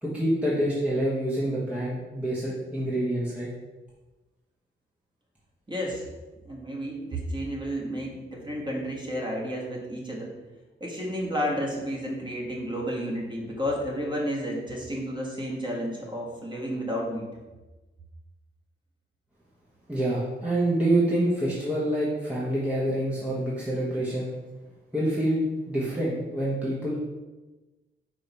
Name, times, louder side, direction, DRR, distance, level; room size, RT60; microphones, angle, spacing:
voice 1, 0.0-3.5 19.9-24.3 24.9-27.0, right 1 dB, 5° right, -7 dB, 1.3 m, -26 dB
voice 2, 5.7-6.1 6.5-10.3 10.8-17.3, equal, 20° right, -3 dB, 1.7 m, -31 dB
5.1 x 3.8 x 5.6 m, 1.2 s
wide cardioid pair, 110°, 21 cm